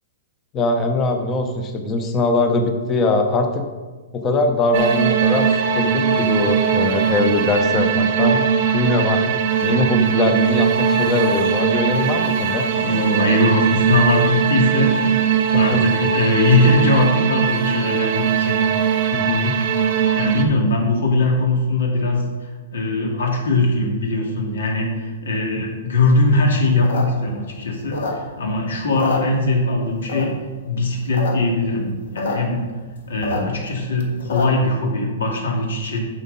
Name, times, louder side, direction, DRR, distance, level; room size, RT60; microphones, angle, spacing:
voice 1, 0.5-3.7 4.1-5.5 5.8-8.5 8.7-9.3 9.6-12.7 15.5-15.8 19.1-19.6 33.4-33.5, left 2 dB, 15° left, 5 dB, 0.7 m, -21 dB
sound 1, 4.7-20.4, right 7 dB, 35° right, 0.8 m, -20 dB
voice 2, 12.8-15.0 15.3-19.0 20.0-30.3 30.7-32.6 33.1-36.0, left 2 dB, 90° left, 0 dB, 2.4 m, -20 dB
sound 2, 26.7-28.5 28.8-29.7 30.1-30.5 30.9-31.3 31.6-31.7 31.8-32.4 32.7-34.7, left 4 dB, 70° left, 1.7 m, -27 dB
9.0 x 6.4 x 4.1 m, 1.3 s
hypercardioid pair, 170°, 0 cm